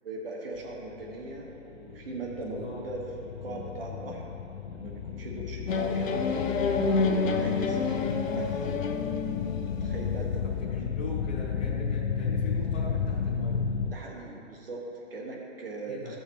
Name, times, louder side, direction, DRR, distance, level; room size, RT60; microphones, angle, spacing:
voice 1, 0.0-4.2 4.7-6.4 7.0-8.9 9.7-11.1 13.9-16.2, right 2 dB, 50° right, -1 dB, 1.5 m, -40 dB
sound 1, 0.6-13.9, left 7 dB, 60° left, 0.5 m, -33 dB
voice 2, 2.4-2.8 10.6-13.6 15.8-16.1, left 2 dB, 10° left, -11 dB, 0.7 m, -40 dB
sound 2, 5.7-10.3, left 4 dB, 90° left, 1.0 m, -28 dB
14.5 x 7.1 x 3.0 m, 2.7 s
hypercardioid pair, 175°, 38 cm